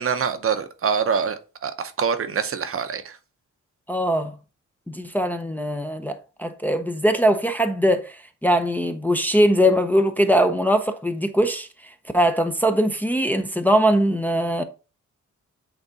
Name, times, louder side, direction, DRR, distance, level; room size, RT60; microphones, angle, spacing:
voice 1, 0.0-3.2, right 6 dB, 45° right, 0.7 m, -25 dB
voice 2, 3.9-4.3 4.9-6.1 6.4-8.2 8.4-11.7 12.1-14.6, equal, 5° left, 0.6 m, -21 dB
8.1 x 3.5 x 3.9 m
wide cardioid pair, 130°, 31 cm